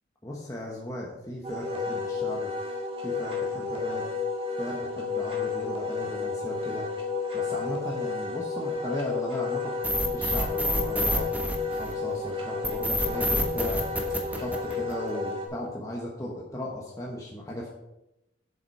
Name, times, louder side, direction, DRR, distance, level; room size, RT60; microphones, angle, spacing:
voice 1, 0.2-2.5 3.0-4.1 4.6-6.9 7.3-9.7 10.0-11.3 11.7-13.8 14.3-17.7, left 1 dB, 20° left, -3 dB, 1.3 m, -36 dB
Wind instrument woodwind instrument, 1.4-15.5, left 4 dB, 35° right, 2.0 m, -31 dB
sound 1, 9.8-12.1 12.6-15.1, equal, 10° right, 1.4 m, -27 dB
8.0 x 7.1 x 5.6 m, 0.92 s
head